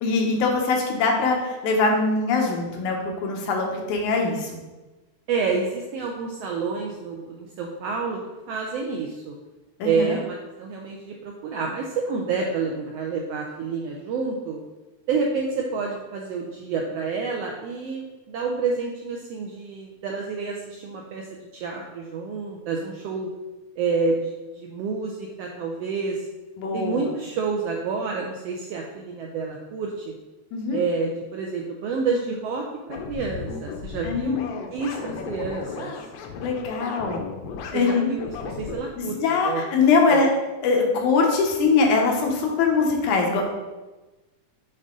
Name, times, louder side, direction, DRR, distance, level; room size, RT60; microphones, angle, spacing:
voice 1, 0.0-4.5 9.8-10.2 26.6-27.1 30.5-30.8 34.0-34.5 36.4-37.3 37.7-38.1 39.0-40.3 40.6-43.4, left 4 dB, 90° left, 1 dB, 2.4 m, -22 dB
voice 2, 5.3-8.2 8.5-9.3 9.8-14.6 15.1-23.3 23.8-26.3 26.7-30.1 30.7-34.4 34.7-35.9 37.7-39.2 39.4-39.6 40.1-40.3, right 4 dB, 80° right, 0 dB, 1.5 m, -29 dB
sound 1, 32.9-38.8, left 5 dB, 75° left, 1.6 m, -35 dB
7.7 x 3.7 x 3.8 m, 1.1 s
omnidirectional pair, 3.4 m